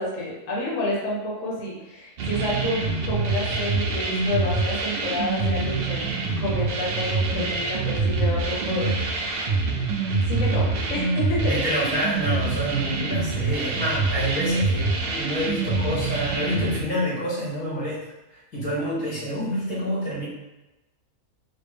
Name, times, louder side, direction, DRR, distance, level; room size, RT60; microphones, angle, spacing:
voice 1, 0.0-6.1 6.4-8.9 10.3-11.5, left 1 dB, 60° left, -5 dB, 1.3 m, -29 dB
sound 1, 2.2-16.8, right 3 dB, 75° right, 0.5 m, -25 dB
voice 2, 11.5-20.3, equal, 90° left, -7 dB, 2.0 m, -28 dB
4.3 x 2.1 x 3.4 m, 1.1 s
omnidirectional pair, 1.6 m